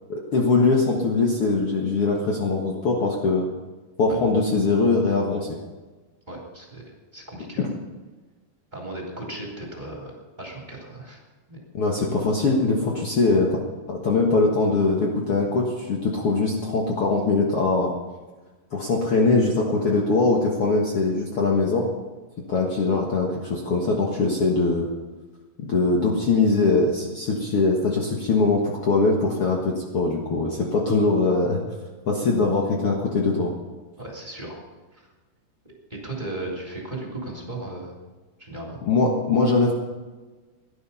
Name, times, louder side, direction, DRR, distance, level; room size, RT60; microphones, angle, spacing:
voice 1, 0.1-3.5 4.0-5.5 7.6-7.7 11.7-13.5 13.9-17.9 18.7-21.9 22.5-24.9 25.7-31.6 32.0-33.5 38.9-39.7, left 3 dB, 85° left, -1 dB, 1.2 m, -22 dB
voice 2, 6.3-6.8 7.1-7.6 8.7-11.2 11.5-11.6 22.5-22.6 34.0-34.6 34.9-35.1 35.9-37.9 38.4-38.8, right 2 dB, 10° right, -2 dB, 2.6 m, -36 dB
17.0 x 11.5 x 5.6 m, 1.3 s
omnidirectional pair, 5.1 m